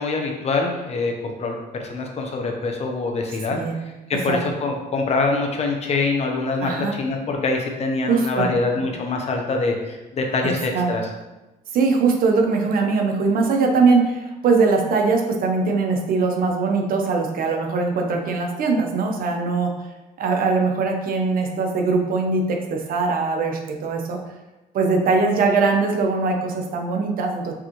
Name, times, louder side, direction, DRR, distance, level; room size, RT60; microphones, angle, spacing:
voice 1, 0.0-3.6 4.1-11.0, left 3 dB, 40° left, 2 dB, 0.8 m, -24 dB
voice 2, 6.6-6.9 8.0-8.5 10.7-10.9 11.7-19.7 20.2-24.2 24.7-27.5, right 4 dB, 60° right, 2 dB, 0.8 m, -21 dB
4.8 x 3.6 x 3.0 m, 1.1 s
cardioid pair, 110°, 17 cm